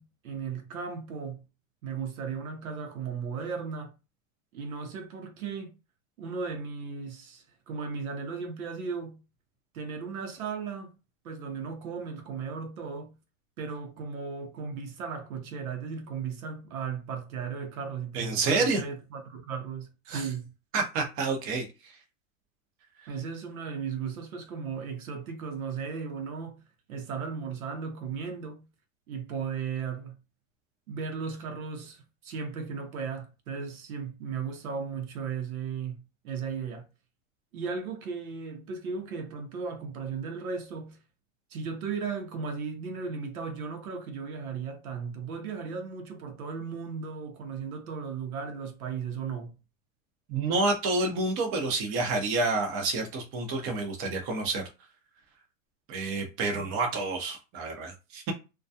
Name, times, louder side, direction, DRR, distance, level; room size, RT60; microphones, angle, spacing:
voice 1, 0.0-1.4 1.8-3.9 4.5-5.8 6.2-9.2 9.7-10.9 11.2-13.2 13.6-20.5 23.1-26.6 26.9-28.7 29.1-30.1 30.9-36.9 37.5-41.0 41.5-49.6 56.5-56.7, right 5 dB, 85° right, 0.8 m, -36 dB
voice 2, 18.1-18.8 20.1-20.3 20.7-21.7 50.3-54.6 55.9-58.3, right 3 dB, 30° right, 0.7 m, -28 dB
2.3 x 2.2 x 2.7 m
hypercardioid pair, 135°, 42 cm